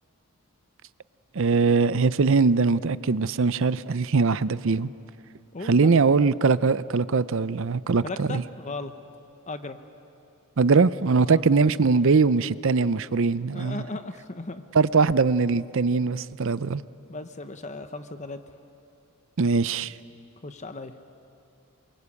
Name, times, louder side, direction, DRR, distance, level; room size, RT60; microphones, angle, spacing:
voice 1, 1.4-4.9 5.7-8.4 10.6-13.8 14.7-16.8 19.4-19.9, right 4 dB, 60° right, 0.6 m, -21 dB
voice 2, 5.5-5.9 8.0-8.9 9.5-9.8 11.2-11.4 13.5-14.6 17.1-18.4 20.4-20.9, left 2 dB, 30° left, 0.9 m, -36 dB
27.5 x 23.0 x 8.5 m
head